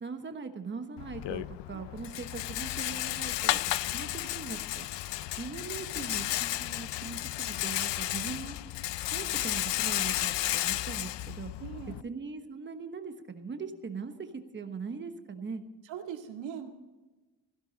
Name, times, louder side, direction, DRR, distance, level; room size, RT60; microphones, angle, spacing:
voice 1, 0.0-3.6 3.9-4.9 5.3-8.6 9.1-11.5 12.0-15.6, right 5 dB, 25° right, 7 dB, 1.2 m, -40 dB
Rattle, 1.0-12.0, left 15 dB, 70° left, 0.6 m, -33 dB
voice 2, 11.6-12.0 15.8-16.7, right 8 dB, 75° right, 4 dB, 2.1 m, -41 dB
16.5 x 16.0 x 4.1 m, 1.2 s
cardioid pair, 170°, 45 cm